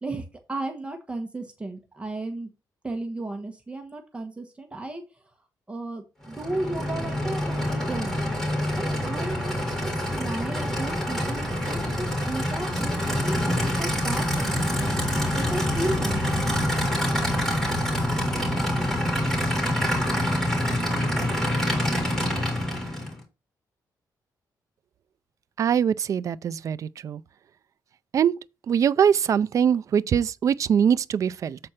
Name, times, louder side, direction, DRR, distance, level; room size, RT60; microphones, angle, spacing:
voice 1, 0.0-2.5 2.8-5.0 5.7-8.3 8.8-13.4 13.8-15.0 15.4-16.5, right 2 dB, 15° right, 1.2 m, -34 dB
Aircraft / Idling, 6.2-23.2, left 1 dB, 5° left, 3.3 m, -26 dB
voice 2, 25.6-27.2 28.1-28.3 28.7-31.6, right 8 dB, 45° right, 0.4 m, -22 dB
7.7 x 4.3 x 5.7 m
wide cardioid pair, 160°, 7 cm